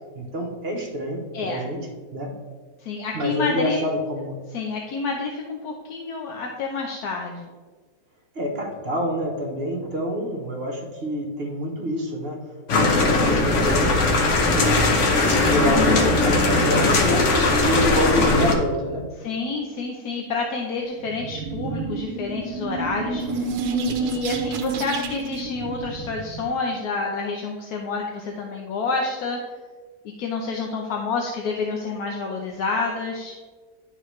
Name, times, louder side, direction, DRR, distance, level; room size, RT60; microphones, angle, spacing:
voice 1, 0.1-1.9 2.1-2.3 3.1-4.3 8.3-12.4 12.8-14.9 15.2-19.1, equal, 45° right, 1 dB, 1.1 m, -27 dB
voice 2, 1.3-1.7 2.8-3.8 4.5-7.5 19.2-29.4 30.2-33.4, left 4 dB, 75° left, 1 dB, 1.2 m, -28 dB
sound 1, 12.7-18.5, left 2 dB, 55° left, 1.1 m, -19 dB
sound 2, 21.0-26.5, right 4 dB, 85° right, 1.2 m, -29 dB
11.0 x 4.0 x 3.1 m, 1.4 s
omnidirectional pair, 1.7 m